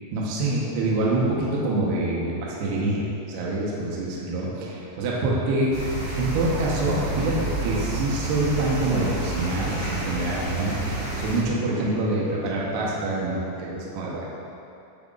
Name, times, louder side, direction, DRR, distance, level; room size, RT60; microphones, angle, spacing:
voice 1, 0.1-5.7 6.2-14.5, right 2 dB, 75° right, -5 dB, 3.0 m, -26 dB
sound 1, 5.7-11.4, right 2 dB, 60° right, 1.7 m, -29 dB
9.3 x 9.1 x 2.5 m, 2.8 s
omnidirectional pair, 5.0 m